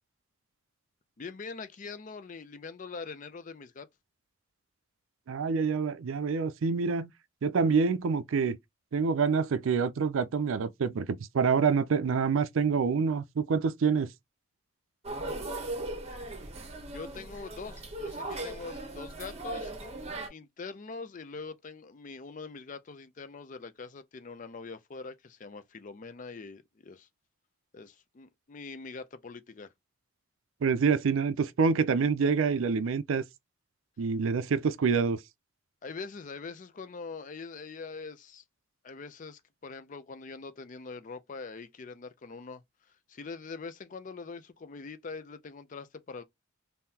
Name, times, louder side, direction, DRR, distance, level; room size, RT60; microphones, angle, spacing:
voice 1, 1.2-3.9 16.9-19.7 20.3-27.1 27.7-29.7 35.8-38.4 38.8-42.6 42.9-46.2, left 4 dB, 40° left, 0.4 m, -43 dB
voice 2, 5.3-7.1 7.4-8.6 8.9-14.1 30.6-33.2 34.0-35.2, right 5 dB, 75° right, 0.4 m, -26 dB
sound 1, 15.0-20.3, right 2 dB, 30° right, 0.8 m, -38 dB
3.7 x 2.7 x 2.7 m
head